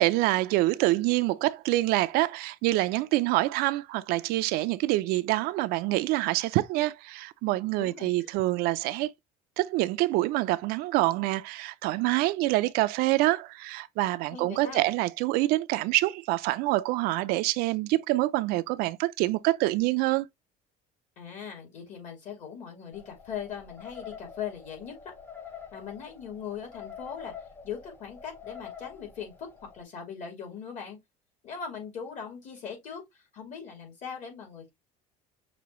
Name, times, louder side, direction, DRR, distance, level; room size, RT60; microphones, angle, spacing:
voice 1, 0.0-9.1 9.6-20.3, right 18 dB, 70° right, 0.4 m, -26 dB
voice 2, 7.8-8.3 14.3-14.9 21.2-24.9 25.7-27.3 27.6-29.5 29.7-31.0 31.4-34.7, left 7 dB, 50° left, 2.7 m, -40 dB
sound 1, 22.9-29.8, left 7 dB, 15° left, 0.7 m, -46 dB
6.1 x 2.6 x 3.0 m
cardioid pair, 130°, 16 cm